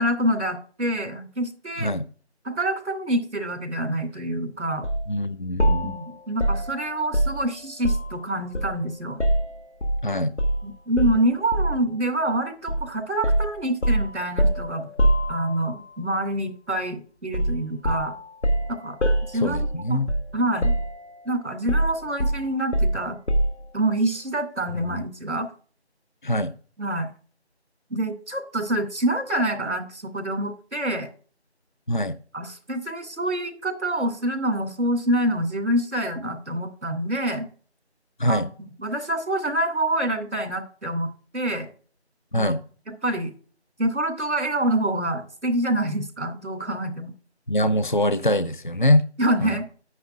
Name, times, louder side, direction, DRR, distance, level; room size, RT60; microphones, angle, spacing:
voice 1, 0.0-1.9 2.4-4.9 5.8-9.2 10.6-14.9 15.3-18.1 18.7-19.0 19.3-20.0 20.3-20.7 21.3-23.2 23.7-25.5 26.8-27.1 27.9-31.1 32.3-37.5 38.3-38.5 38.8-41.7 42.3-42.5 42.9-43.3 43.8-47.1 49.2-49.7, right 1 dB, 90° right, 6 dB, 2.5 m, -26 dB
sound 1, 4.8-5.0 5.6-8.2 8.5-10.0 10.4-10.6 11.0-11.9 12.7-12.9 13.2-15.8 17.3-17.6 17.8-20.3 20.6-21.2 21.7-23.7, right 1 dB, 85° left, 1.6 m, -24 dB
voice 2, 5.1-5.9 10.0-10.3 19.3-20.1 24.9-25.0 26.2-26.5 31.9-32.2 38.2-38.5 42.3-42.6 47.5-49.0 49.4-49.6, left 1 dB, 45° left, 15 dB, 0.5 m, -23 dB
9.5 x 9.5 x 2.5 m, 0.42 s
figure-of-eight pair, 180°, 34 cm